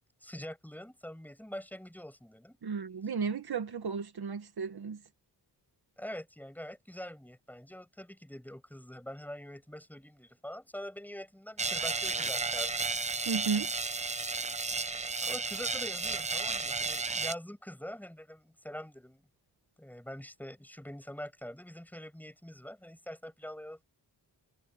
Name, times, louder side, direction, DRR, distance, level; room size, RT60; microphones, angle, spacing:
voice 1, 0.2-2.6 6.0-12.9 15.2-19.3 19.8-23.8, equal, 5° left, 6.6 m, -44 dB
voice 2, 2.6-5.0 13.3-13.7, right 5 dB, 65° right, 1.8 m, -34 dB
sound 1, 11.6-17.3, right 4 dB, 15° right, 0.6 m, -33 dB
wide cardioid pair, 165°, 41 cm